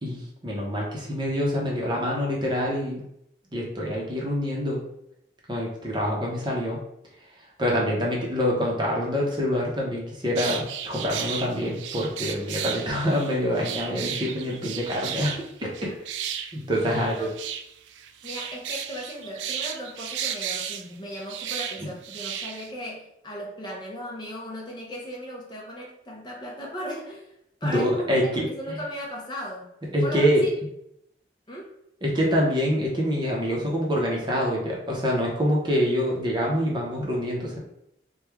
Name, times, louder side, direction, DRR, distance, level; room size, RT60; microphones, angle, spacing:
voice 1, 0.0-3.0 3.5-4.8 5.5-6.8 7.6-15.3 15.6-15.9 16.5-17.3 21.8-21.9 27.6-28.8 29.9-30.5 32.0-37.6, equal, 25° right, -3 dB, 0.7 m, -26 dB
sound 1, 10.4-22.7, right 9 dB, 90° right, 0.3 m, -34 dB
voice 2, 16.9-17.3 18.2-27.3 27.6-29.7 30.0-30.5 31.5-31.7, equal, 25° left, -2 dB, 0.5 m, -37 dB
3.1 x 2.2 x 3.4 m, 0.78 s
head